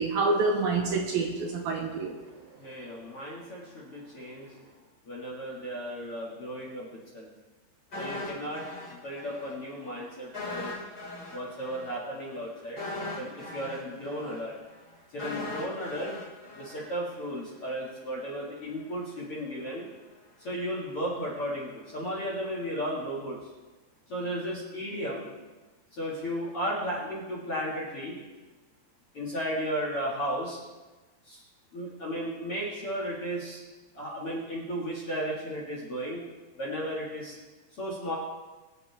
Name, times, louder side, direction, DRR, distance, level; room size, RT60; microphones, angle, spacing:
voice 1, 0.0-2.1, right 3 dB, 75° right, 1 dB, 2.4 m, -27 dB
voice 2, 2.6-4.7 5.1-6.9 7.1-7.3 8.0-10.7 11.3-12.8 13.2-14.6 15.1-16.2 16.6-19.9 20.4-23.4 24.1-25.3 25.9-28.2 29.1-30.6 31.2-31.4 31.7-33.6 33.9-36.2 36.6-37.4 37.7-38.1, equal, 45° left, -6 dB, 2.1 m, -34 dB
sound 1, 7.9-9.5 9.8-10.0 10.3-17.4 17.7-17.9, left 2 dB, 25° left, 2.6 m, -39 dB
22.5 x 8.7 x 3.5 m, 1.2 s
omnidirectional pair, 5.0 m